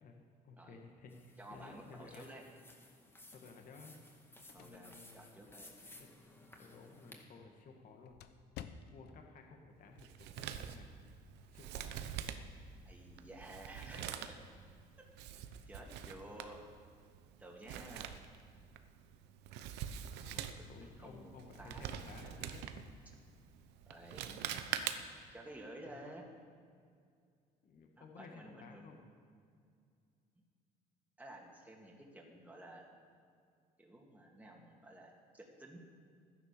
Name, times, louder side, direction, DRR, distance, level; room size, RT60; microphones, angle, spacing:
voice 1, 0.0-2.3 3.3-4.0 4.6-5.4 6.0-8.2 8.9-10.9 11.4-12.0 20.2-22.6 25.8-26.1 27.6-29.1 34.5-34.6, left 4 dB, 55° left, 3 dB, 1.8 m, -56 dB
sound 1, 1.1-7.2, left 1 dB, 15° left, 1.9 m, -59 dB
voice 2, 1.4-2.4 4.5-5.7 12.8-14.4 15.0-15.1 15.6-16.7 17.4-18.2 20.3-22.4 23.9-24.5 25.3-26.3 28.0-29.0 31.2-33.0 33.8-35.8, right 1 dB, 10° right, -1 dB, 2.2 m, -53 dB
sound 2, 4.0-9.3, left 9 dB, 80° left, 0.8 m, -56 dB
Male speech man speaking, 10.0-25.3, right 9 dB, 90° right, 0.9 m, -45 dB
13.5 x 10.5 x 6.8 m, 2.2 s
cardioid pair, 110°, 17 cm